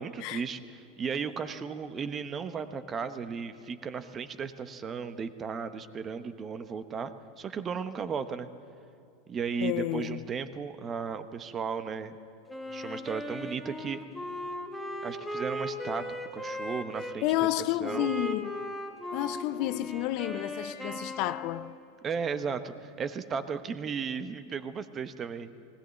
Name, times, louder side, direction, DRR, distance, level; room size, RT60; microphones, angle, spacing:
voice 1, 0.0-8.5 9.3-12.2 12.7-14.0 15.0-16.0 16.3-17.5 17.8-18.1 22.0-25.6, right 6 dB, 30° right, 1.0 m, -35 dB
voice 2, 9.6-10.2 17.2-18.6 19.1-21.7, left 15 dB, 55° left, 0.5 m, -30 dB
Wind instrument woodwind instrument, 12.5-17.2 17.8-21.8, equal, ahead, 2.5 m, -37 dB
19.0 x 17.0 x 7.8 m
hypercardioid pair, 100°, 0 cm